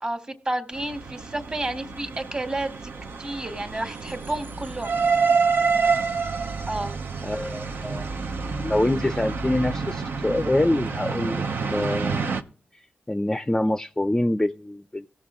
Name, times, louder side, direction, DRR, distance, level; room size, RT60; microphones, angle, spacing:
voice 1, 0.0-2.7 3.2-5.0 6.7-7.0, right 1 dB, 25° right, 1.6 m, -30 dB
sound 1, 0.7-12.4, right 5 dB, 70° right, 0.8 m, -28 dB
voice 2, 7.2-8.1 8.6-12.5 13.1-15.1, left 1 dB, 15° left, 0.5 m, -25 dB
16.5 x 6.5 x 3.7 m
cardioid pair, 50°, 4 cm